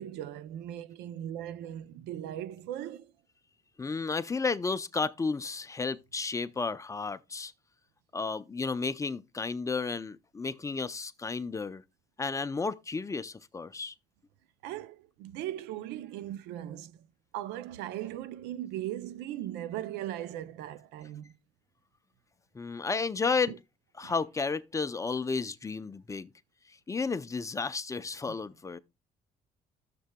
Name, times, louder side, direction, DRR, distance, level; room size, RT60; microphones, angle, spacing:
voice 1, 0.0-3.1 14.6-17.1 17.3-21.4 23.5-23.6 24.0-24.1 28.3-28.4, right 12 dB, 90° right, 0.6 m, -38 dB
voice 2, 3.8-7.5 8.1-11.8 12.2-13.9 22.5-23.5 24.0-26.3 26.9-28.8, left 4 dB, 20° left, 0.5 m, -32 dB
14.5 x 6.8 x 2.2 m
cardioid pair, 110°, 17 cm